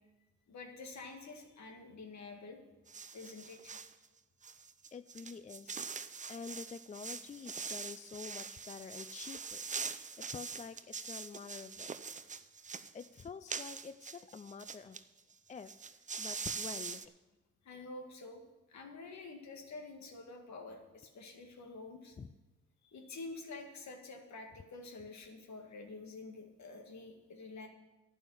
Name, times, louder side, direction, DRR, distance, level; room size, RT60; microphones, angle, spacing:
voice 1, 0.5-2.6 3.1-3.8 17.6-18.4 18.7-22.2 22.8-27.7, left 3 dB, 65° left, 4 dB, 2.0 m, -48 dB
sound 1, 2.9-3.9 4.4-15.0 15.3-15.4 15.6-17.1, right 5 dB, 25° right, 0.6 m, -43 dB
voice 2, 4.9-12.3 12.9-15.0 15.5-15.8 16.2-17.1 22.2-22.3, left 5 dB, 25° left, 13 dB, 0.4 m, -48 dB
11.5 x 5.6 x 8.9 m, 1.1 s
cardioid pair, 70°, 30 cm